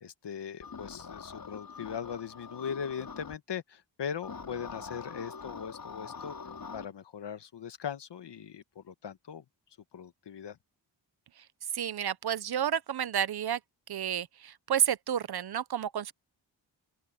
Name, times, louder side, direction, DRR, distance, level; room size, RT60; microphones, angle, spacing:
voice 1, 0.0-6.3 6.7-9.4 9.9-10.6, left 7 dB, 65° left, 1.3 m, -39 dB
sound 1, 0.6-3.4 4.2-6.9, left 5 dB, 50° left, 4.2 m, -44 dB
voice 2, 11.7-13.6 13.9-16.1, right 9 dB, 55° right, 0.7 m, -30 dB
open air
wide cardioid pair, 140°, 45 cm